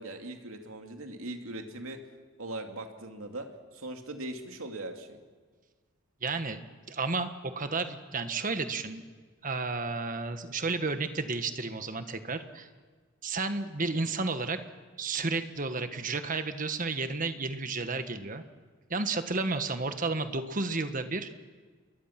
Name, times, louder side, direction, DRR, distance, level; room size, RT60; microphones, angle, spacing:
voice 1, 0.0-2.0 2.4-3.5 3.7-5.2 13.9-14.0, right 2 dB, 90° right, 4 dB, 2.6 m, -40 dB
voice 2, 6.2-6.6 6.9-9.0 9.4-12.7 13.2-14.6 15.0-18.4 18.9-21.3, right 3 dB, 40° right, 9 dB, 1.4 m, -32 dB
28.5 x 22.0 x 5.9 m, 1.5 s
head